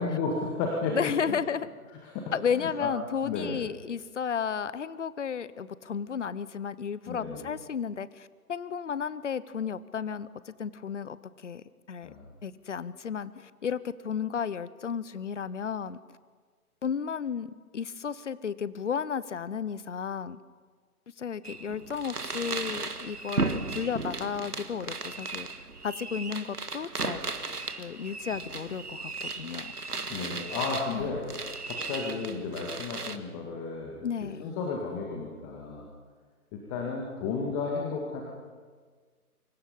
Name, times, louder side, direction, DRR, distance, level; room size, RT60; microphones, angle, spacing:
voice 1, 0.0-1.4 1.9-2.9 3.2-3.7 7.1-7.5 12.0-12.3 30.1-31.2 31.6-35.9 36.5-38.2, left 4 dB, 15° left, -1 dB, 2.0 m, -33 dB
voice 2, 0.9-1.7 2.3-11.2 11.4-12.1 12.4-16.0 16.8-20.4 21.2-25.5 25.8-27.2 27.8-29.7 30.9-31.1 34.0-34.4, left 7 dB, 50° left, 17 dB, 1.0 m, -33 dB
sound 1, 21.5-33.2, right 3 dB, 80° right, 1.8 m, -36 dB
28.0 x 25.0 x 5.6 m, 1.6 s
figure-of-eight pair, 140°, 45 cm